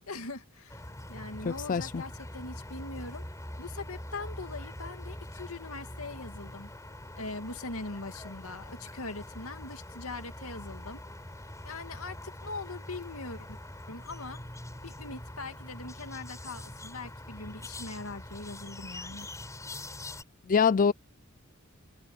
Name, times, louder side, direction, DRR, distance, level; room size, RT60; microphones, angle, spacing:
voice 1, 0.1-3.2 3.6-6.7 7.1-11.0 11.6-13.6 13.9-14.4 14.8-19.3, left 3 dB, 85° left, 2.4 m, -41 dB
sound 1, 0.7-20.2, left 1 dB, 15° left, 6.3 m, -44 dB
voice 2, 1.4-2.0 20.5-20.9, left 6 dB, 40° left, 0.4 m, -24 dB
head